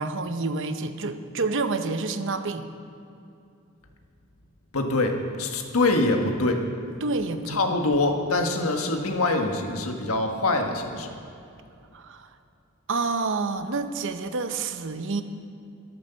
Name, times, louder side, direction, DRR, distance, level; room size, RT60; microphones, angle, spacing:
voice 1, 0.0-2.7 7.0-7.8 11.9-12.3 12.9-15.2, right 3 dB, 60° right, 9 dB, 0.8 m, -28 dB
voice 2, 4.7-6.6 7.5-11.1, left 2 dB, 80° left, 4 dB, 1.6 m, -24 dB
13.0 x 11.5 x 7.0 m, 2.6 s
head